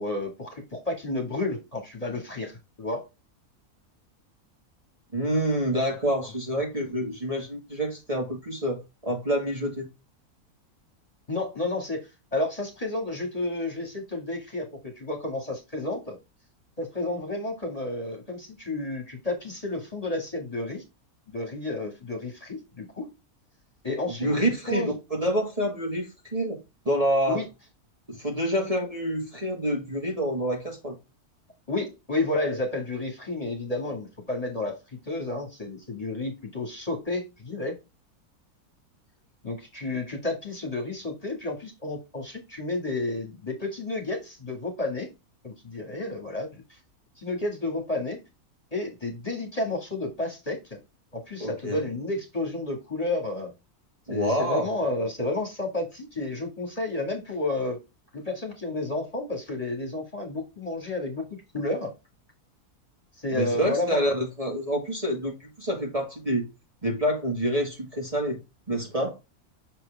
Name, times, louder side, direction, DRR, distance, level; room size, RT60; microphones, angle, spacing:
voice 1, 0.0-3.0 11.3-16.2 16.8-20.8 21.3-23.1 23.8-24.9 27.3-27.4 31.7-34.8 35.0-37.8 39.4-45.1 45.4-46.8 47.2-48.2 48.7-50.8 51.1-53.5 54.1-57.8 58.1-61.2 61.5-61.9 63.2-64.0, left 2 dB, 25° left, 2.1 m, -31 dB
voice 2, 5.1-9.9 24.2-26.6 26.9-27.4 28.1-31.0 51.4-51.8 54.1-54.7 63.3-66.5 66.8-68.4 68.7-69.1, equal, 25° right, 1.9 m, -27 dB
6.8 x 4.5 x 3.4 m
omnidirectional pair, 1.6 m